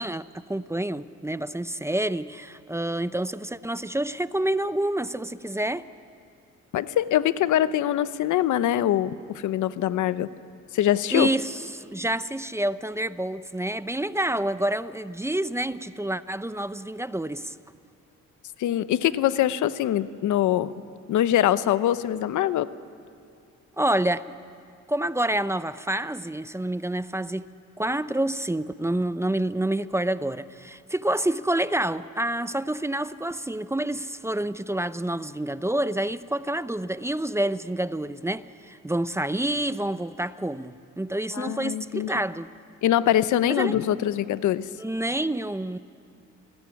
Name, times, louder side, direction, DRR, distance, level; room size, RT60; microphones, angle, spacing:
voice 1, 0.0-5.9 11.1-17.6 23.8-24.4 24.9-27.5 27.8-42.5 43.5-44.0 44.8-45.8, right 1 dB, 10° right, 0.7 m, -28 dB
voice 2, 6.7-10.3 10.7-11.3 18.6-20.7 21.1-22.7 41.3-42.1 42.8-44.7, left 12 dB, 80° left, 0.9 m, -23 dB
29.0 x 20.0 x 9.9 m
cardioid pair, 90°, 30 cm